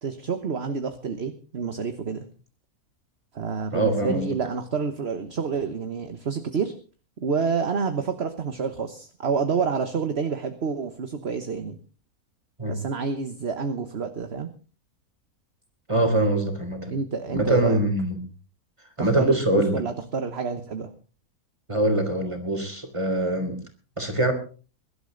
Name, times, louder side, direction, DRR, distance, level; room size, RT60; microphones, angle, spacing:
voice 1, 0.0-2.3 3.3-6.8 7.2-11.8 12.7-14.5 16.9-17.8 19.0-20.9, right 5 dB, 45° right, 8 dB, 1.4 m, -28 dB
voice 2, 3.7-4.3 12.6-12.8 15.9-17.0 17.3-18.2 19.0-19.9 21.7-23.6 24.0-24.3, right 1 dB, 20° right, 6 dB, 3.5 m, -23 dB
22.5 x 12.0 x 3.9 m, 0.37 s
omnidirectional pair, 1.5 m